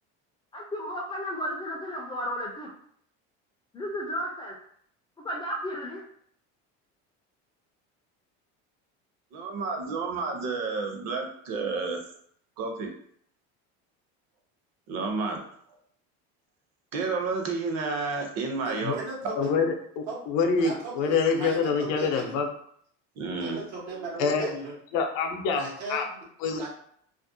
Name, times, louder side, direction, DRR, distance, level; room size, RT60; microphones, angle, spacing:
voice 1, 0.5-2.7 3.7-4.6 5.2-6.0, equal, 15° left, -1 dB, 0.3 m, -33 dB
voice 2, 9.3-12.0 12.6-12.9 14.9-15.4 16.9-19.0 19.2-19.3 23.2-23.6, right 4 dB, 50° right, 3 dB, 0.6 m, -30 dB
voice 3, 18.6-19.5 20.1-20.2 20.5-22.4 23.4-24.8 25.5-26.3 26.5-26.7, right 3 dB, 90° right, -2 dB, 1.0 m, -37 dB
voice 4, 19.4-22.5 24.2-24.5 24.9-25.6 25.9-26.1 26.4-26.6, left 5 dB, 70° left, 4 dB, 0.6 m, -26 dB
2.5 x 2.0 x 2.6 m, 0.64 s
cardioid pair, 125°, 33 cm